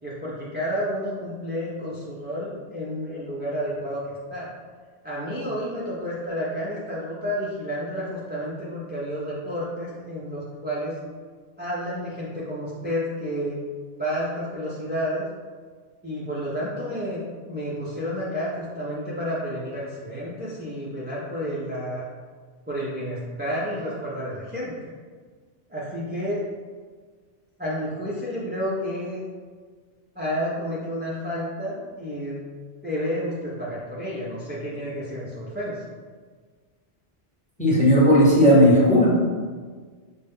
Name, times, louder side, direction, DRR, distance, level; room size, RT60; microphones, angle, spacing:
voice 1, 0.0-4.5 5.0-11.0 11.6-13.6 14.0-15.3 16.0-17.2 17.5-22.0 22.7-24.9 25.7-26.4 27.6-29.2 30.2-32.4 32.8-35.8, equal, 15° right, -8 dB, 0.4 m, -30 dB
voice 2, 37.6-39.1, equal, 5° left, -6 dB, 0.8 m, -15 dB
5.4 x 2.2 x 3.4 m, 1.5 s
omnidirectional pair, 1.2 m